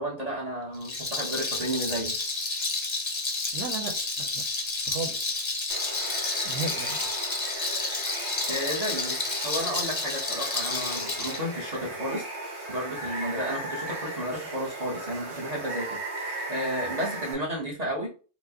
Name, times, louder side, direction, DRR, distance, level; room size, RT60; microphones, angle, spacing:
voice 1, 0.0-2.2 8.5-12.3 12.7-18.1, equal, 35° right, 1.0 m, -32 dB
Rattle, 0.7-11.4, left 3 dB, 30° left, 0.5 m, -30 dB
voice 2, 3.5-4.4 4.9-5.6 6.4-7.0, right 4 dB, 85° right, 1.1 m, -35 dB
Water, 5.7-17.3, right 2 dB, 70° right, 1.2 m, -37 dB
4.4 x 2.1 x 2.8 m
omnidirectional pair, 1.2 m